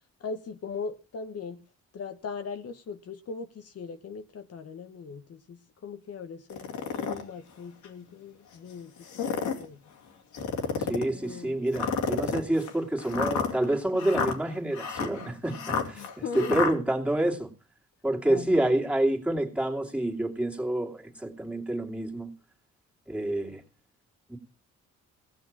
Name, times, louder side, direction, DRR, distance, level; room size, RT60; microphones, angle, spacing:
voice 1, 0.2-1.6 1.9-9.8 11.1-11.6 12.3-12.4 15.9-16.6 18.2-18.7, left 5 dB, 55° left, 1.2 m, -39 dB
sound 1, 6.5-7.2 7.8-7.9 9.0-9.7 10.3-11.1 11.7-16.7, left 6 dB, 75° left, 2.6 m, -30 dB
voice 2, 10.9-16.0 16.3-17.5 18.0-22.3 23.1-23.6 24.3-24.4, right 1 dB, 5° right, 2.8 m, -28 dB
16.5 x 6.4 x 7.5 m
cardioid pair, 90°, 30 cm